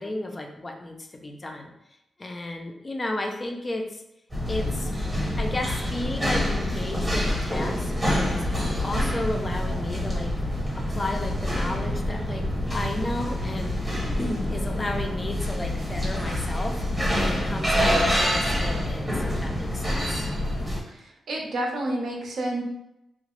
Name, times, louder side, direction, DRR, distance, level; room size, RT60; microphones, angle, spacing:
voice 1, 0.0-1.7 2.2-4.0 4.5-4.9 5.4-10.4 10.7-20.3, left 2 dB, 25° left, 3 dB, 0.3 m, -33 dB
sound 1, 4.3-20.8, left 1 dB, 10° right, 0.8 m, -26 dB
voice 2, 21.3-22.6, right 1 dB, 70° right, 0 dB, 0.6 m, -29 dB
2.9 x 2.0 x 2.9 m, 0.86 s
wide cardioid pair, 140°, 0 cm